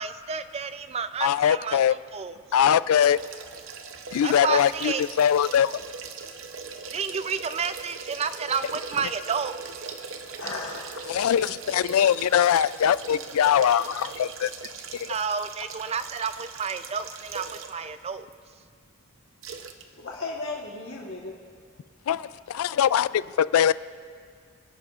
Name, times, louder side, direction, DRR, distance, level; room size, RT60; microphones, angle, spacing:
voice 1, 0.0-2.4 4.2-5.0 6.9-9.5 15.0-18.3, right 6 dB, 30° right, 12 dB, 0.4 m, -30 dB
voice 2, 1.2-2.0 2.5-3.2 4.1-5.8 11.1-14.5 14.9-15.1 22.1-23.7, left 9 dB, 90° left, 17 dB, 0.3 m, -22 dB
sound 1, 2.9-17.9 18.3-18.4 19.4-19.8 20.1-20.2, right 5 dB, 65° right, 0.8 m, -40 dB
voice 3, 10.2-10.9 20.0-21.4 22.1-22.2, left 3 dB, 70° left, -1 dB, 1.3 m, -35 dB
25.0 x 10.5 x 2.4 m, 2.1 s
head